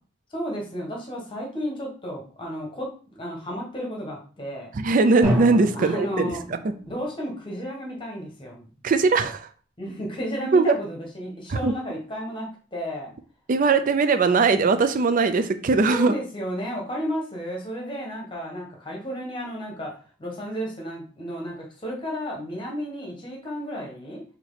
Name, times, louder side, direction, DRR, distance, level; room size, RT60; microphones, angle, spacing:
voice 1, 0.3-4.7 5.7-6.4 6.9-8.7 9.8-13.1 15.9-19.9 20.2-24.2, equal, 25° left, -1 dB, 1.3 m, -32 dB
voice 2, 4.7-6.3 6.6-6.7 8.8-9.5 10.5-10.7 11.5-11.7 13.5-16.1, right 4 dB, 45° right, 10 dB, 0.4 m, -20 dB
Drum, 5.2-7.1, equal, 20° right, 1.9 m, -30 dB
4.3 x 2.9 x 4.0 m, 0.40 s
head